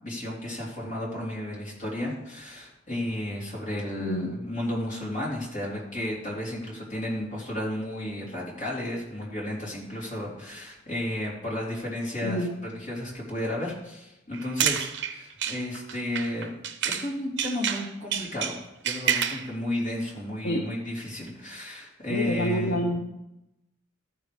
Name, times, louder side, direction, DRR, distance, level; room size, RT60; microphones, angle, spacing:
voice 1, 0.0-16.5 16.8-22.8, left 1 dB, 40° left, -5 dB, 3.3 m, -33 dB
voice 2, 4.0-4.3 12.2-12.5 20.4-20.7 22.1-23.0, equal, 60° left, 1 dB, 0.9 m, -27 dB
sound 1, 14.3-17.1 17.4-19.5, right 8 dB, 60° right, 0.8 m, -29 dB
13.5 x 5.0 x 5.3 m, 0.91 s
head